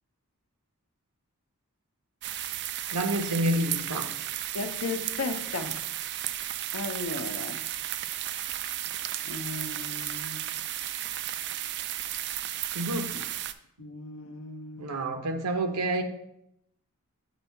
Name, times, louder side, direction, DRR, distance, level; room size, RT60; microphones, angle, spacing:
sound 1, 2.2-13.5, right 12 dB, 50° right, 0.3 m, -34 dB
voice 1, 2.9-4.1 12.7-13.2 14.8-16.0, right 1 dB, 85° right, 0.8 m, -28 dB
voice 2, 4.5-5.8 6.7-7.6 9.2-10.4 13.1-13.2 13.8-14.9, left 3 dB, 65° left, 0.6 m, -36 dB
7.3 x 2.7 x 5.6 m
head